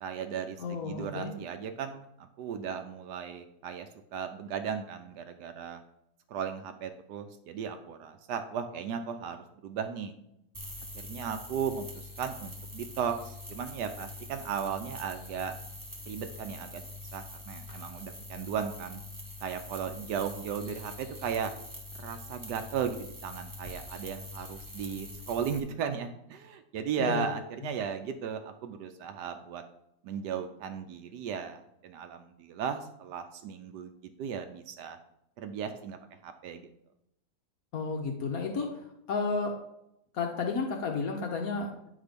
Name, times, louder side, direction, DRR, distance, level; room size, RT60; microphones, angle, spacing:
voice 1, 0.0-5.8 6.3-9.4 9.6-10.1 11.0-15.5 16.1-16.8 17.1-19.0 19.4-21.5 22.0-29.6 30.0-35.0 35.4-36.0 36.2-36.7, right 7 dB, 80° right, 7 dB, 1.2 m, -36 dB
voice 2, 0.6-1.3 27.0-27.3 37.7-38.7 39.1-39.6 40.1-41.7, left 4 dB, 60° left, 2 dB, 1.2 m, -32 dB
sound 1, 10.5-25.6, left 2 dB, 15° right, 0.7 m, -44 dB
9.3 x 3.7 x 5.1 m, 0.81 s
omnidirectional pair, 1.8 m